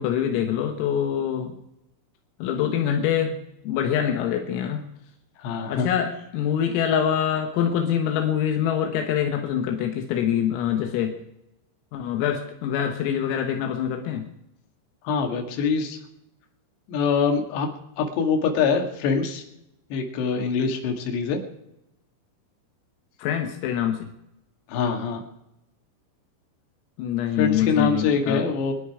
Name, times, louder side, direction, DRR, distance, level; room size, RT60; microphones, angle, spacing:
voice 1, 0.0-1.6 2.4-3.3 3.7-4.9 5.7-11.2 11.9-14.3 23.2-24.1 27.0-28.5, left 9 dB, 80° left, 4 dB, 4.0 m, -25 dB
voice 2, 5.4-5.9 15.0-16.0 16.9-17.7 18.0-19.4 19.9-21.4 24.7-25.2 27.4-28.7, left 5 dB, 60° left, 2 dB, 4.0 m, -24 dB
24.0 x 11.5 x 4.9 m, 0.85 s
omnidirectional pair, 6.0 m